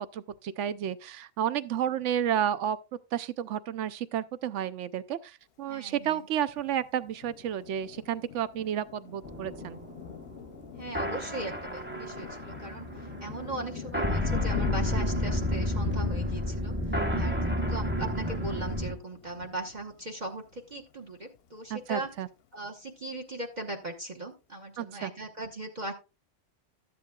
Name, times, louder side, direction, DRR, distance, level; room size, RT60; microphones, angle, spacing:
voice 1, 0.0-2.8 3.1-9.8 16.9-17.4 21.7-22.3 24.8-25.1, right 10 dB, 80° right, 1.0 m, -31 dB
voice 2, 5.7-6.3 10.8-17.4 17.7-22.1 22.5-25.9, right 2 dB, 40° right, 1.2 m, -39 dB
Thunder, 6.5-20.9 21.4-21.5 21.8-22.4, left 10 dB, 60° left, 0.8 m, -43 dB
sound 1, 9.2-18.9, left 1 dB, 10° right, 1.0 m, -31 dB
13.0 x 10.0 x 2.3 m
omnidirectional pair, 1.2 m